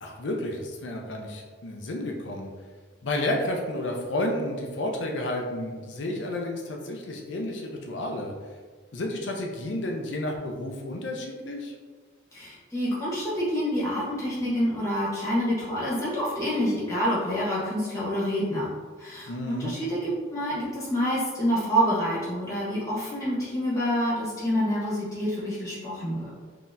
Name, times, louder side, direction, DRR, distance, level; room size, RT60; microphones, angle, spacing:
voice 1, 0.0-2.5 3.0-8.3 8.9-11.7 19.3-19.7, left 1 dB, 70° left, 1 dB, 0.6 m, -31 dB
voice 2, 12.3-18.7 19.0-26.3, equal, 15° left, -8 dB, 1.2 m, -27 dB
3.9 x 2.9 x 2.6 m, 1.5 s
head